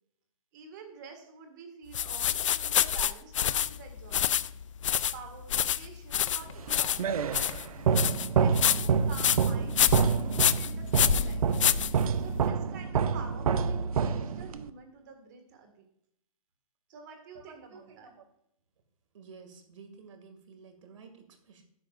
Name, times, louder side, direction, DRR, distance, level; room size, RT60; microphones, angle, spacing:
voice 1, 0.5-4.5 5.1-7.1 7.7-9.8 10.2-11.7 12.2-15.9 16.9-18.1, right 5 dB, 30° right, 5 dB, 1.8 m, -48 dB
sound 1, 1.9-12.4, left 10 dB, 60° left, 0.4 m, -28 dB
sound 2, 6.6-14.7, right 6 dB, 80° right, 0.6 m, -28 dB
voice 2, 17.3-18.2 19.1-21.6, right 5 dB, 60° right, 6 dB, 2.2 m, -52 dB
12.0 x 10.5 x 2.5 m, 0.76 s
hypercardioid pair, 175°, 18 cm